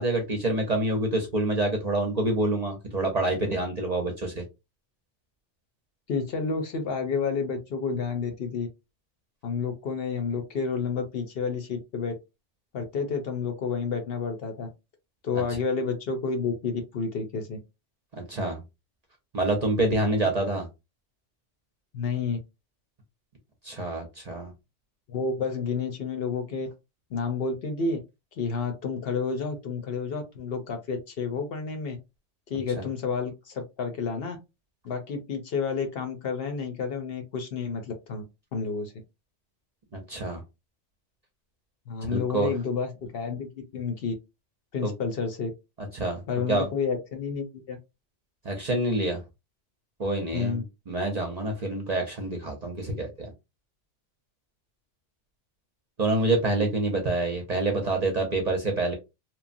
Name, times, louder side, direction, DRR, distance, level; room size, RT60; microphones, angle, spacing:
voice 1, 0.0-4.4 15.3-15.4 18.3-18.6 19.3-20.7 23.6-24.5 32.8-32.9 39.9-40.4 42.1-42.5 44.8-44.9 45.8-46.2 46.5-46.7 48.4-49.2 50.0-53.3 56.0-58.9, right 2 dB, 45° right, 2 dB, 0.6 m, -27 dB
voice 2, 6.1-8.7 9.4-12.1 12.7-14.7 15.2-17.6 21.9-22.4 25.1-26.7 27.1-28.0 28.4-32.0 32.5-34.4 34.8-38.2 38.5-38.9 41.9-44.1 44.7-45.5 46.3-47.8 50.3-50.6, left 5 dB, 60° left, 5 dB, 0.8 m, -30 dB
3.0 x 2.1 x 2.5 m, 0.24 s
omnidirectional pair, 1.2 m